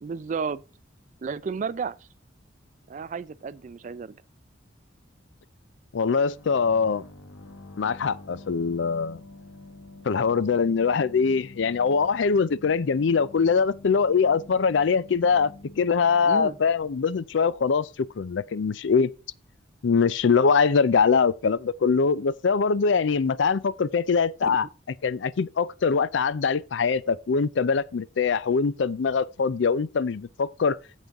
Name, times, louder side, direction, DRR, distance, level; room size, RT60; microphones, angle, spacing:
voice 1, 0.0-0.6 1.2-2.0 2.9-4.2 16.2-16.6 24.4-24.6, right 5 dB, 40° right, 0.3 m, -32 dB
voice 2, 5.9-7.0 7.8-9.2 10.0-15.5 15.8-19.1 19.8-24.7 25.0-30.8, left 5 dB, 70° left, 0.4 m, -23 dB
sound 1, 6.2-17.6, left 2 dB, 90° left, 1.2 m, -47 dB
9.1 x 7.2 x 3.5 m
head